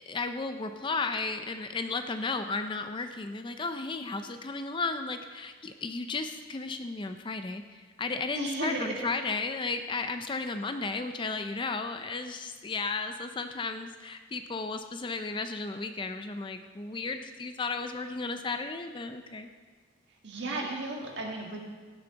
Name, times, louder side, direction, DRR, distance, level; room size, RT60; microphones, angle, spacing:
voice 1, 0.1-19.5, left 3 dB, 25° left, 8 dB, 0.4 m, -34 dB
voice 2, 8.3-9.0 20.1-21.6, right 2 dB, 55° right, -1 dB, 1.9 m, -34 dB
16.5 x 7.0 x 3.9 m, 1.5 s
head